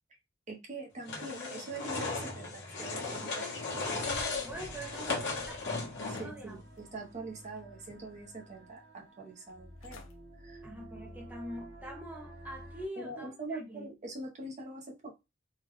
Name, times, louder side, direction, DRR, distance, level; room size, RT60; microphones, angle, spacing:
voice 1, 0.5-3.6 6.1-10.0 10.4-10.6 13.0-15.1, right 2 dB, 35° right, 0.8 m, -43 dB
sound 1, 1.0-6.5, left 3 dB, 60° left, 1.1 m, -36 dB
sound 2, 3.7-5.7 6.2-7.0 7.4-8.2 8.7-8.8 9.5-9.6 9.8-10.1 10.6-10.9 11.3-11.4, left 1 dB, 80° left, 0.7 m, -53 dB
voice 2, 4.4-5.6 6.1-6.6 10.6-13.9, right 1 dB, 10° right, 0.6 m, -44 dB
sound 3, 4.7-12.9, right 1 dB, 50° right, 1.3 m, -52 dB
3.8 x 2.3 x 3.0 m
head